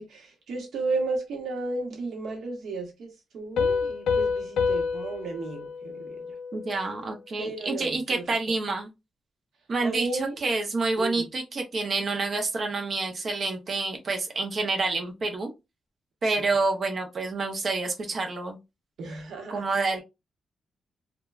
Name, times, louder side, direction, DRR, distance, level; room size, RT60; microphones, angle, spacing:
voice 1, 0.0-3.1 3.3-6.2 7.4-8.2 9.8-10.4 11.0-11.2 16.4-16.5 19.0-19.6, right 3 dB, 70° right, 0.9 m, -33 dB
Piano, 3.6-7.0, left 5 dB, 85° left, 0.5 m, -28 dB
voice 2, 6.5-8.9 9.7-15.5 16.2-18.6 19.5-20.0, right 3 dB, 35° right, 0.6 m, -28 dB
3.1 x 2.2 x 2.3 m
wide cardioid pair, 175°, 0 cm